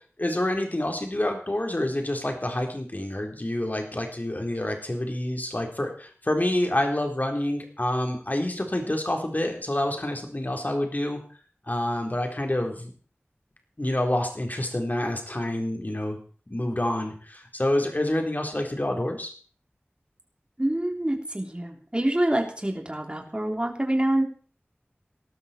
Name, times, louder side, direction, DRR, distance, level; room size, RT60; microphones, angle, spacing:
voice 1, 0.2-11.2 11.7-12.9 13.8-16.2 16.5-19.3, left 1 dB, 45° left, 3 dB, 3.9 m, -27 dB
voice 2, 20.6-24.2, right 1 dB, 25° right, 2 dB, 3.5 m, -26 dB
18.5 x 12.5 x 4.5 m, 0.42 s
wide cardioid pair, 50°, 4 cm